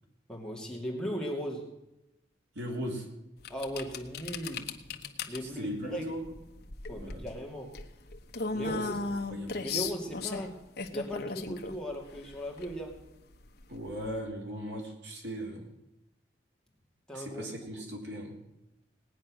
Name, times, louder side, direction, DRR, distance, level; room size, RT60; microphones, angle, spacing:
voice 1, 0.3-1.7 3.5-4.7 5.3-6.1 6.9-7.7 8.5-9.0 9.6-10.6 10.9-13.0 17.1-17.5, equal, 5° left, -2 dB, 2.5 m, -37 dB
voice 2, 2.6-3.1 5.4-6.3 6.9-7.3 8.6-8.9 9.3-9.7 13.7-15.7 17.1-18.4, equal, 70° right, 0 dB, 3.4 m, -38 dB
sound 1, 3.4-14.2, left 4 dB, 55° left, 1.1 m, -37 dB
18.5 x 9.6 x 6.2 m, 0.92 s
head